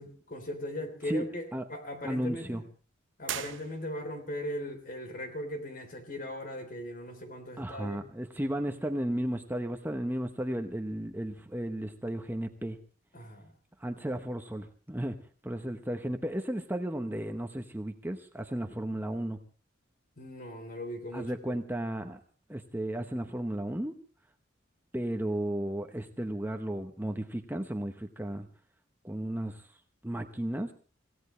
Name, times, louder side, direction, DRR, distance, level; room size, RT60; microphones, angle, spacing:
voice 1, 0.0-2.6 3.2-8.0 13.1-13.5 20.2-21.6, left 1 dB, 45° left, 7 dB, 3.4 m, -39 dB
voice 2, 2.0-2.6 7.6-12.8 13.8-19.4 21.1-22.2 22.5-23.9 24.9-28.5 29.0-29.8 30.0-30.7, right 1 dB, 10° right, 5 dB, 0.9 m, -34 dB
sound 1, 3.2-4.3, right 10 dB, 70° right, 0.8 m, -39 dB
26.5 x 16.5 x 3.2 m, 0.38 s
head